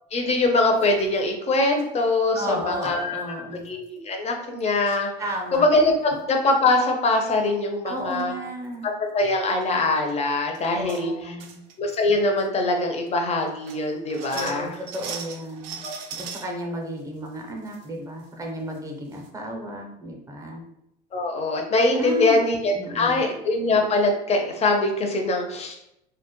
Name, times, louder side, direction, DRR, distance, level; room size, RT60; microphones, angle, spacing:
voice 1, 0.1-3.8 4.0-5.1 5.5-8.3 8.8-11.1 11.8-14.7 15.8-16.0 21.1-25.8, left 2 dB, 30° left, 3 dB, 0.5 m, -23 dB
sound 1, 0.8-1.2 1.8-1.9 2.8-3.0 3.4-3.5 3.7-3.9 4.6-5.1 5.5-5.9 7.6-7.7 8.0-8.2 8.6-8.8 9.5-9.6 10.1-10.2 10.5-11.0 11.4-12.0 12.4-12.5 13.1-13.2 13.5-16.5 17.0-17.9 18.2-18.3 18.7-18.8 19.1-19.3, right 6 dB, 65° right, 0.4 m, -40 dB
voice 2, 2.3-3.6 5.2-5.7 7.9-8.9 10.7-11.6 14.3-15.8 16.1-20.6 22.0-23.3, equal, 15° right, 1 dB, 0.6 m, -33 dB
2.2 x 2.0 x 2.9 m, 0.81 s
supercardioid pair, 95°, 21 cm